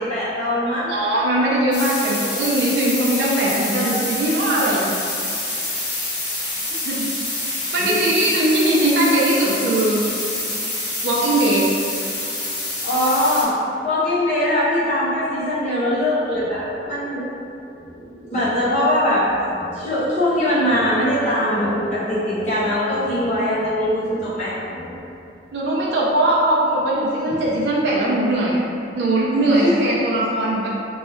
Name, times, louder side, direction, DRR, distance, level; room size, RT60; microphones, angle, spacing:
voice 1, 0.0-0.9 3.8-3.9 7.8-8.0 12.8-13.5 13.8-17.3 18.1-19.3 19.7-24.5 29.5-29.8, left 1 dB, 40° left, -11 dB, 0.9 m, -21 dB
voice 2, 0.9-4.8 6.7-7.1 7.5-10.0 11.0-11.6 25.5-28.6 28.9-30.7, right 1 dB, 70° right, -5 dB, 0.5 m, -20 dB
sound 1, 1.7-13.4, left 2 dB, 65° left, 1.2 m, -27 dB
sound 2, 16.3-17.2 17.7-25.0, left 1 dB, 20° left, 0.7 m, -37 dB
3.1 x 2.3 x 4.2 m, 2.6 s
head